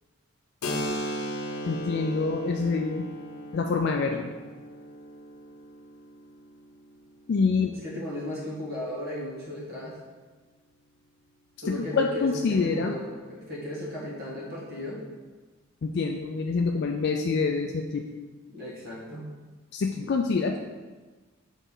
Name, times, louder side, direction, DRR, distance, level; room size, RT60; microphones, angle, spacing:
Keyboard (musical), 0.6-8.0, equal, 90° left, 0.7 m, -37 dB
voice 1, 1.7-3.0 3.5-4.3 7.3-7.7 11.7-12.9 15.8-18.1 19.7-20.6, left 4 dB, 50° left, 3 dB, 0.4 m, -26 dB
voice 2, 7.7-10.0 11.6-15.0 18.5-19.3, left 1 dB, 45° right, -5 dB, 1.6 m, -36 dB
6.2 x 4.0 x 3.9 m, 1.3 s
head